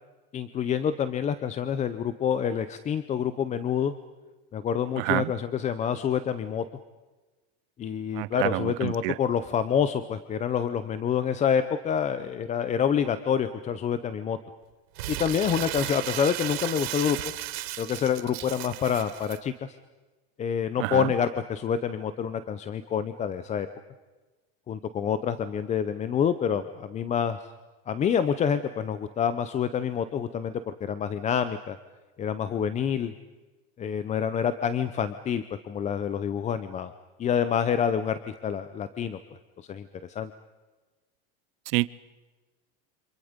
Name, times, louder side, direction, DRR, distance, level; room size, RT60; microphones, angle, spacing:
voice 1, 0.3-3.9 4.5-6.6 7.8-14.4 15.1-17.2 17.8-19.7 20.4-23.7 24.7-27.4 27.9-31.8 32.2-33.1 33.8-36.9 37.2-39.2 39.6-40.3, left 8 dB, 25° left, 12 dB, 0.7 m, -27 dB
voice 2, 8.2-9.1 20.9-21.0 41.7-41.9, right 22 dB, 65° right, 18 dB, 0.7 m, -27 dB
Crumpling crinkling, 15.0-19.4, right 15 dB, 85° right, 1.5 m, -35 dB
28.5 x 26.5 x 5.2 m, 1.2 s
supercardioid pair, 145°, 31 cm